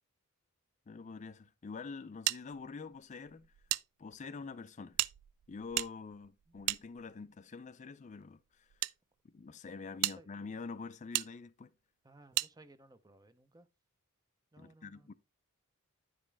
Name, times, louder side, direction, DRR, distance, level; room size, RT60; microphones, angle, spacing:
voice 1, 0.9-3.5 4.0-5.0 5.5-8.7 9.3-11.7 14.6-15.1, left 4 dB, 35° left, 0.4 m, -46 dB
sound 1, 2.3-3.8 4.1-4.2 4.9-7.4 8.2-8.9 9.5-9.6 10.0-10.2 11.1-11.3 12.3-12.5, right 17 dB, 85° right, 0.3 m, -36 dB
voice 2, 9.7-10.3 12.0-13.7 14.5-15.1, right 2 dB, 15° right, 0.5 m, -60 dB
9.7 x 5.2 x 3.3 m
head